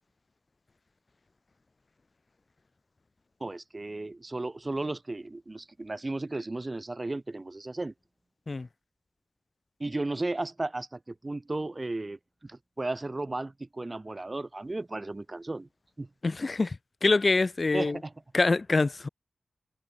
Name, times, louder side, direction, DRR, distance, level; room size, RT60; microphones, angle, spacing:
voice 1, 3.4-7.9 9.8-15.7 16.0-16.1 17.7-18.1, right 2 dB, 30° right, 0.3 m, -34 dB
voice 2, 16.2-18.0 18.3-19.1, left 3 dB, 40° left, 0.4 m, -25 dB
wide cardioid pair, 90°, 0 cm